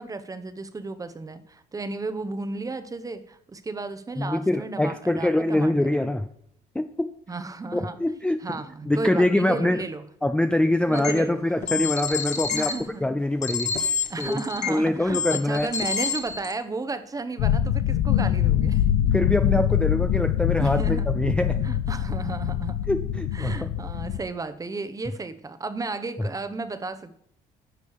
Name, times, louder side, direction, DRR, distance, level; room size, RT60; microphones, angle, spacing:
voice 1, 0.0-6.0 7.3-8.0 8.4-10.0 10.9-11.7 12.5-13.1 14.1-18.8 20.6-21.2 21.6-22.8 23.3-27.2, right 3 dB, 20° right, 11 dB, 0.9 m, -33 dB
voice 2, 4.2-6.3 6.7-7.1 7.7-9.8 10.2-12.7 13.0-14.4 14.7-15.7 19.1-21.6 22.9-23.7, left 1 dB, 5° left, 8 dB, 0.5 m, -24 dB
sound 1, 10.9-11.1 11.6-12.7 13.4-14.8 15.1-16.5, left 6 dB, 45° left, 1.7 m, -27 dB
sound 2, 17.4-24.2, left 10 dB, 85° left, 0.6 m, -24 dB
11.0 x 6.6 x 4.7 m, 0.69 s
cardioid pair, 110°, 17 cm